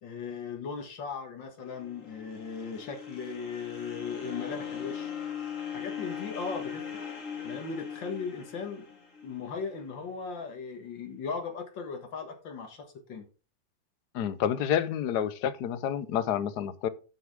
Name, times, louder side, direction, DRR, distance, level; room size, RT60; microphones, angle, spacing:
voice 1, 0.0-5.1 5.7-6.8 7.4-8.9 9.2-13.2, left 5 dB, 85° left, 2.4 m, -38 dB
sound 1, 1.6-9.8, left 7 dB, 45° left, 2.3 m, -40 dB
voice 2, 14.1-16.9, left 9 dB, 65° left, 1.3 m, -29 dB
9.5 x 8.5 x 3.6 m
omnidirectional pair, 2.0 m